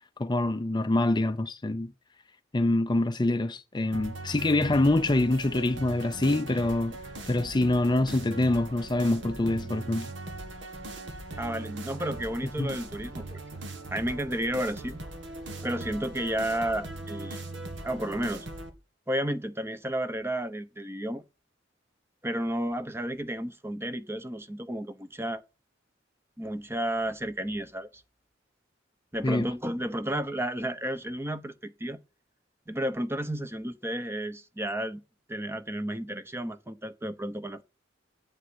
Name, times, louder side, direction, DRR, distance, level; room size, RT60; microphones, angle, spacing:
voice 1, 0.2-1.9 2.5-7.0 7.3-10.1 12.6-12.7 29.2-29.5, left 2 dB, 25° left, 0.5 m, -25 dB
sound 1, 3.9-18.7, right 2 dB, 70° right, 2.1 m, -40 dB
voice 2, 11.4-13.4 13.9-15.0 15.6-17.4 17.8-18.5 19.1-21.2 22.2-25.4 26.4-27.9 29.1-32.0 32.7-35.0 35.3-37.6, right 1 dB, 15° right, 0.9 m, -32 dB
9.0 x 8.2 x 6.3 m
head